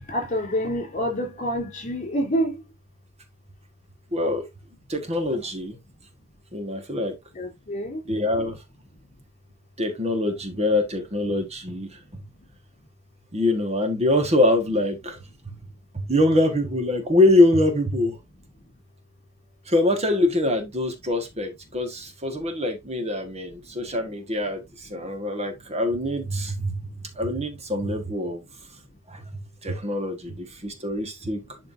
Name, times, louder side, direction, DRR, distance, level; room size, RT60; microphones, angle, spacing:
voice 1, 0.1-2.6 7.3-8.0, equal, 35° left, 3.8 m, -27 dB
voice 2, 4.1-4.5 4.9-5.8 6.5-7.1 8.1-8.6 9.8-12.0 13.3-15.2 15.4-15.5 15.9-18.2 19.7-28.4 29.1-29.3 29.6-31.6, left 1 dB, 30° right, 1.6 m, -24 dB
11.5 x 4.5 x 2.7 m
head